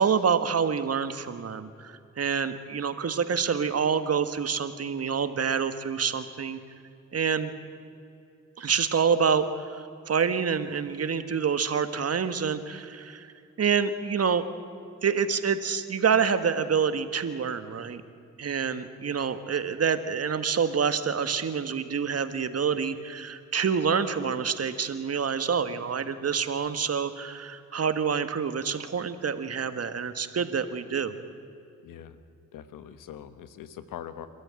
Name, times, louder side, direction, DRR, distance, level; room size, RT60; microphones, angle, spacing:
voice 1, 0.0-6.6 7.1-7.5 8.6-14.4 15.0-18.0 18.4-31.1, right 6 dB, 50° right, 10 dB, 1.7 m, -27 dB
voice 2, 31.8-32.2 32.5-34.3, left 9 dB, 90° left, 12 dB, 1.3 m, -42 dB
27.5 x 13.5 x 9.0 m, 2.5 s
cardioid pair, 70°, 31 cm